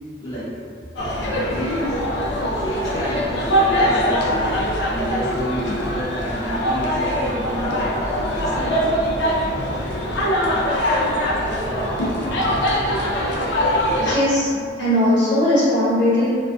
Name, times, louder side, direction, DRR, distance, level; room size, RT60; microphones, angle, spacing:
voice 1, 0.2-0.5 1.1-2.0 2.6-4.3 4.9-7.9 8.3-8.9, equal, 20° left, -11 dB, 0.5 m, -31 dB
sound 1, 1.0-14.1, equal, 70° left, 0.4 m, -22 dB
voice 2, 14.0-16.3, left 1 dB, 90° left, -11 dB, 1.1 m, -19 dB
2.4 x 2.3 x 2.2 m, 2.3 s
head